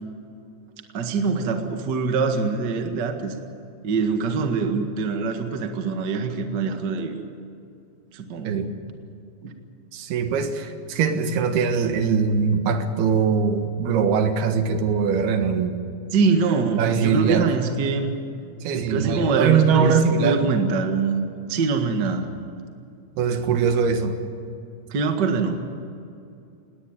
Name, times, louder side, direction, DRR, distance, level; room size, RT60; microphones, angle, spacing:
voice 1, 0.9-3.3 3.8-7.2 8.1-8.7 9.4-9.5 16.1-18.2 18.7-22.2 24.9-25.5, right 4 dB, 40° right, 5 dB, 1.6 m, -24 dB
voice 2, 9.9-15.8 16.8-17.5 18.6-20.6 23.2-24.2, right 6 dB, 85° right, 7 dB, 3.5 m, -22 dB
20.0 x 18.5 x 9.1 m, 2.5 s
omnidirectional pair, 4.4 m